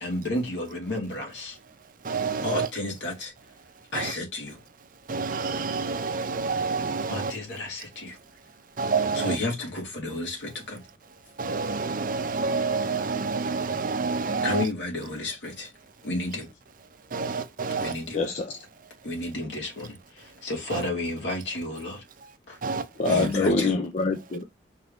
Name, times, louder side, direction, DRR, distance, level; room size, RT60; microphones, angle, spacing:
voice 1, 0.0-1.6 2.4-3.3 3.9-4.6 7.1-8.2 9.1-10.8 14.4-15.7 16.0-16.5 17.8-18.2 19.0-22.0 22.5-22.6 23.1-23.7, left 2 dB, 70° left, 1.8 m, -32 dB
voice 2, 2.0-2.7 3.9-4.1 5.1-7.3 8.8-9.4 11.4-14.7 17.1-18.0 20.7-20.8 22.6-23.3, right 4 dB, 50° right, 0.6 m, -28 dB
voice 3, 18.1-18.5 23.0-24.4, left 3 dB, 40° left, 0.5 m, -25 dB
4.4 x 2.7 x 3.4 m
head